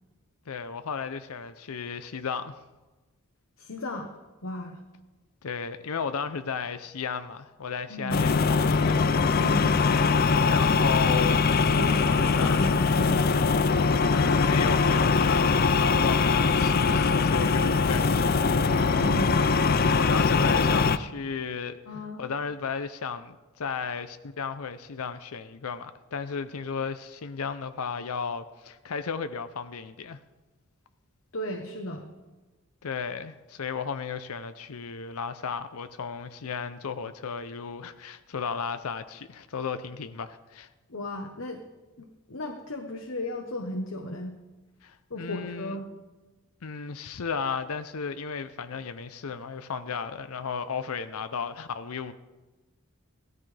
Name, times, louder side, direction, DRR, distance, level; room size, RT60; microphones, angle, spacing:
voice 1, 0.5-2.5 5.4-9.0 10.5-11.6 12.3-12.6 14.1-18.9 20.0-21.8 22.2-30.2 32.8-40.7 44.8-45.8 46.6-52.1, left 6 dB, 90° left, 0.6 m, -34 dB
voice 2, 3.6-4.1 4.4-4.8 7.9-8.3 9.3-9.7 11.7-13.5 20.3-20.8 21.9-22.2 31.3-32.1 40.9-41.6 42.0-44.3 45.1-45.9, left 1 dB, 70° left, 1.1 m, -35 dB
sound 1, 8.1-21.0, left 4 dB, 45° left, 0.4 m, -22 dB
16.5 x 13.5 x 3.4 m
head